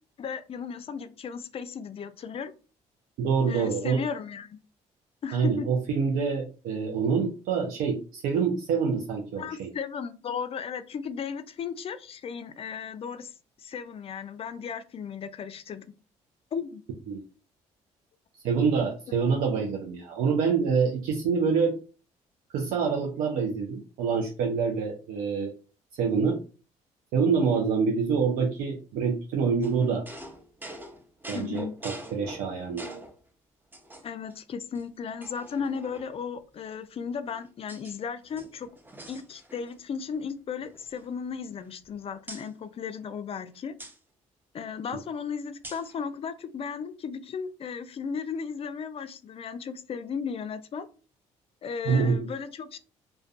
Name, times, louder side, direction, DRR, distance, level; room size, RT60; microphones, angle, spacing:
voice 1, 0.2-2.5 3.5-4.6 5.2-5.7 9.4-15.9 16.5-16.8 31.3-31.7 34.0-38.7 39.1-43.7 44.5-50.9 51.6-52.8, left 6 dB, 40° left, 0.4 m, -35 dB
voice 2, 3.2-4.0 5.3-9.7 17.1-17.2 18.4-21.8 22.5-25.5 25.9-26.4 27.1-30.0 31.3-33.0 44.9-45.0 51.8-52.3, right 5 dB, 80° right, 0.4 m, -26 dB
sound 1, 29.6-33.2 33.7-34.3 34.7-34.8 35.2-36.3 37.0-38.0 38.3-39.8 40.1-40.3 40.6-41.9 42.3-42.5 43.8-44.0 45.6-46.0, right 1 dB, 15° right, 0.6 m, -45 dB
2.3 x 2.1 x 2.5 m
supercardioid pair, 65°, 14 cm